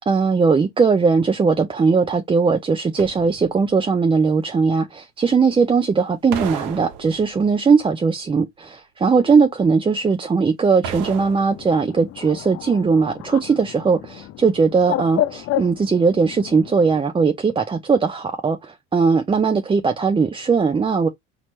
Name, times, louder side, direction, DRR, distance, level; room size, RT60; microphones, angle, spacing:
voice 1, 0.1-4.9 5.2-21.1, right 5 dB, 15° right, 0.5 m, -19 dB
sound 1, 3.0-3.8 6.3-7.6 10.8-11.9 12.2-12.3, right 7 dB, 65° right, 1.1 m, -33 dB
Bird, 11.5-17.0, left 14 dB, 45° left, 0.5 m, -30 dB
4.3 x 2.9 x 3.1 m
hypercardioid pair, 70°, 34 cm